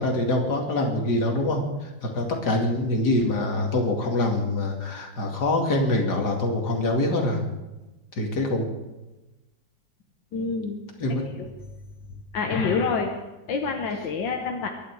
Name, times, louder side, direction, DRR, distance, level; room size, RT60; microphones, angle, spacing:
voice 1, 0.0-1.6 2.0-7.4 8.2-8.7 11.0-11.2, left 2 dB, 60° left, 1 dB, 3.0 m, -24 dB
voice 2, 10.3-10.8 11.4-11.5 12.3-13.1 13.5-14.7, left 4 dB, 85° left, 3 dB, 1.9 m, -26 dB
24.0 x 11.0 x 4.8 m, 1.1 s
omnidirectional pair, 2.0 m